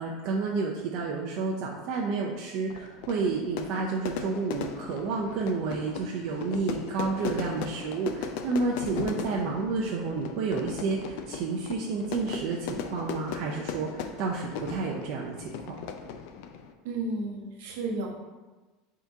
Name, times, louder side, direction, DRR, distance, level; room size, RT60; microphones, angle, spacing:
voice 1, 0.0-15.8, right 4 dB, 45° right, -2 dB, 0.4 m, -30 dB
Fire / Fireworks, 2.7-16.7, left 6 dB, 55° left, 0.3 m, -38 dB
voice 2, 16.8-18.1, right 2 dB, 70° right, -1 dB, 0.9 m, -32 dB
3.7 x 2.7 x 4.5 m, 1.2 s
supercardioid pair, 170°, 0 cm